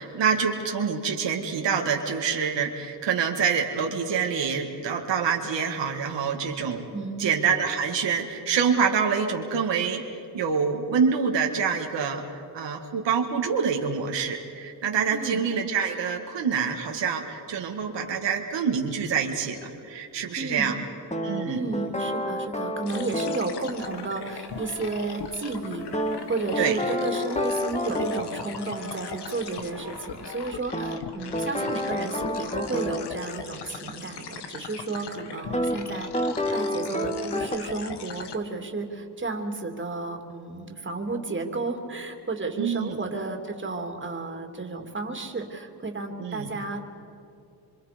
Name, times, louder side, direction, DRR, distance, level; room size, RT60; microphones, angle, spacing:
voice 1, 0.0-6.8 7.2-20.8 21.2-21.7 26.6-26.8 42.6-43.0 46.2-46.5, right 6 dB, 85° right, 2 dB, 2.0 m, -26 dB
voice 2, 6.9-7.3 15.1-15.4 20.4-20.7 21.5-25.9 26.3-36.1 36.4-46.8, right 3 dB, 30° right, 3 dB, 2.7 m, -32 dB
sound 1, 21.1-23.5 25.9-28.3 30.7-33.1 35.5-35.8 36.1-37.6, left 1 dB, 15° left, 1.9 m, -29 dB
sound 2, 22.9-38.4, left 6 dB, 70° left, 1.5 m, -40 dB
sound 3, 23.8-30.5, left 2 dB, 40° left, 4.2 m, -45 dB
26.5 x 25.0 x 5.2 m, 2.7 s
cardioid pair, 75°, 42 cm